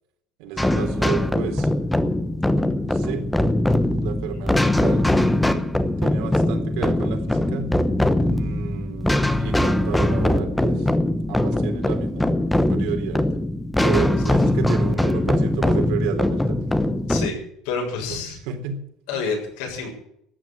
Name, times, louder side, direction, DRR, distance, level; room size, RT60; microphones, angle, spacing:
voice 1, 0.4-1.7 2.9-3.2 4.0-5.0 6.0-7.7 8.3-10.9 11.3-12.3 12.7-13.2 13.8-16.6 18.5-18.8, right 8 dB, 70° right, 4 dB, 3.9 m, -31 dB
sound 1, 0.6-17.3, left 1 dB, 5° left, 0.9 m, -21 dB
voice 2, 17.1-18.4 19.1-19.9, left 4 dB, 80° left, 2 dB, 7.0 m, -28 dB
14.0 x 10.5 x 9.0 m, 0.72 s
cardioid pair, 170°, 0 cm